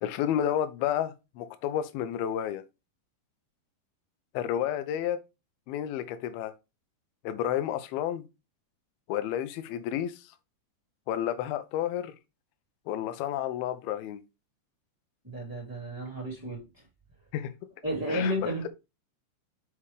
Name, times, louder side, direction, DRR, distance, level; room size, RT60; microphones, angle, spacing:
voice 1, 0.0-2.6 4.3-5.2 5.7-6.5 7.2-8.2 9.1-10.2 11.1-12.1 12.9-14.2 17.3-17.5 18.1-18.3, left 10 dB, 80° left, 2.2 m, -31 dB
voice 2, 15.2-16.6 17.8-18.7, equal, 15° right, 0.6 m, -32 dB
7.1 x 5.2 x 3.2 m
omnidirectional pair, 5.4 m